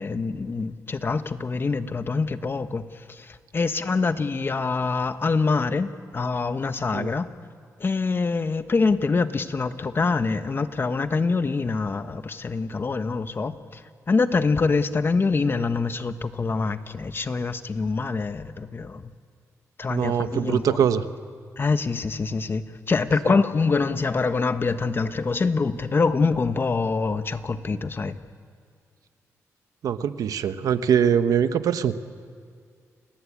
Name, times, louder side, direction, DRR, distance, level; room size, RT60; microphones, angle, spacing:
voice 1, 0.0-2.8 3.1-7.3 7.8-13.8 14.1-19.1 19.8-20.8 21.6-28.2, left 4 dB, 40° left, 10 dB, 1.3 m, -25 dB
voice 2, 19.9-21.1 23.3-23.4 29.8-32.0, right 8 dB, 85° right, 11 dB, 1.1 m, -23 dB
29.5 x 19.0 x 8.8 m, 2.2 s
cardioid pair, 80°, 6 cm